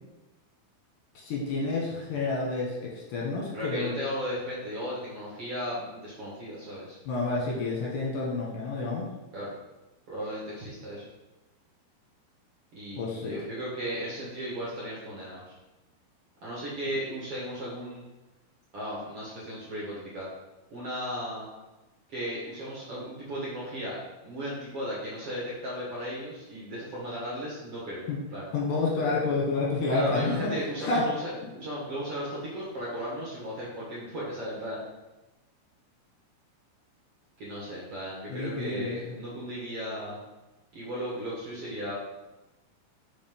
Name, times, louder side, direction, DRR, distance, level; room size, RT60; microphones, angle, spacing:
voice 1, 1.1-3.9 7.1-9.1 13.0-13.4 28.1-28.2 28.5-30.5 30.8-31.1 38.3-39.1, left 3 dB, 65° left, -4 dB, 2.8 m, -29 dB
voice 2, 3.5-7.0 9.3-9.5 10.1-11.0 12.7-15.5 16.4-18.0 18.7-20.3 20.7-21.5 22.1-24.0 24.2-28.5 29.9-34.8 37.4-40.2 40.7-42.0, equal, 50° right, -7 dB, 2.0 m, -36 dB
5.6 x 5.2 x 5.3 m, 1.1 s
omnidirectional pair, 4.5 m